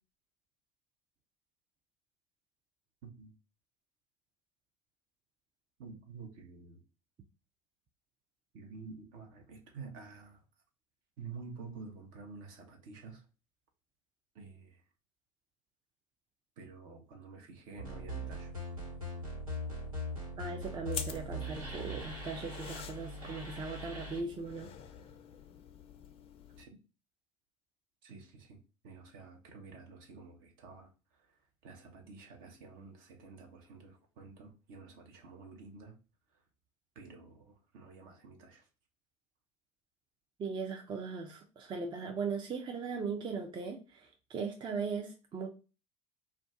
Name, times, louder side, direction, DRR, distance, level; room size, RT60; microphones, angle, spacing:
voice 1, 3.0-3.3 5.8-6.8 8.5-10.4 11.2-13.2 14.3-14.8 16.6-18.5 26.6-26.7 28.0-28.6 28.8-36.0 36.3-36.4 36.9-38.7, right 4 dB, 55° right, 0.9 m, -50 dB
sound 1, 17.8-24.2, equal, 85° right, 1.3 m, -41 dB
voice 2, 20.4-24.7 40.4-45.5, right 5 dB, 25° right, 0.5 m, -39 dB
sound 2, 20.9-26.6, left 7 dB, 35° left, 0.4 m, -47 dB
2.4 x 2.2 x 3.6 m
figure-of-eight pair, 70°, 17 cm